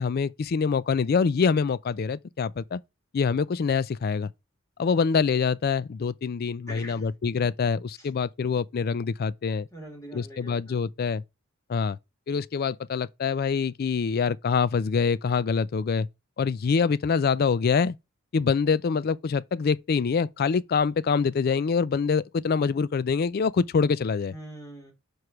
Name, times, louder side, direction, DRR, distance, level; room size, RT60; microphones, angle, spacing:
voice 1, 0.0-2.8 3.1-4.3 4.8-9.7 10.1-11.2 11.7-12.0 12.3-16.1 16.4-18.0 18.3-24.3, left 5 dB, 45° left, 0.4 m, -25 dB
voice 2, 6.7-7.1 8.0-8.1 9.7-10.9 24.3-24.9, right 1 dB, 15° left, 2.7 m, -43 dB
4.9 x 4.7 x 5.8 m
head